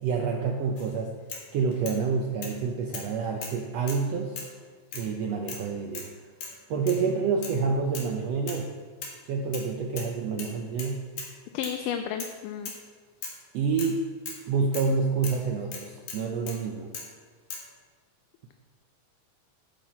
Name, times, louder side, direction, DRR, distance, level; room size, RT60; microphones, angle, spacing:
voice 1, 0.0-1.1 1.5-4.4 4.9-6.1 6.7-8.7 9.3-11.0 13.5-14.0 14.5-16.9, right 5 dB, 80° right, 1 dB, 1.5 m, -28 dB
sound 1, 0.8-0.9 1.3-2.0 2.4-2.6 2.9-3.1 3.4-4.0 4.4-4.6 4.9-5.1 5.5-5.7 5.9-6.1 6.4-6.6 6.9-7.0 7.4-7.6 7.9-8.1 8.5-8.7 9.0-9.7 10.0-10.1 10.4-11.3 11.6-11.8 12.2-12.4 12.7-12.8 13.2-13.4 13.8-14.0 14.3-14.4 14.7-14.9 15.2-15.4 15.7-16.6 16.9-17.1 17.5-17.7, left 4 dB, 65° left, 2.9 m, -39 dB
voice 2, 11.5-12.7, left 8 dB, 80° left, 7 dB, 2.1 m, -32 dB
14.5 x 5.7 x 4.3 m, 1.5 s
omnidirectional pair, 3.8 m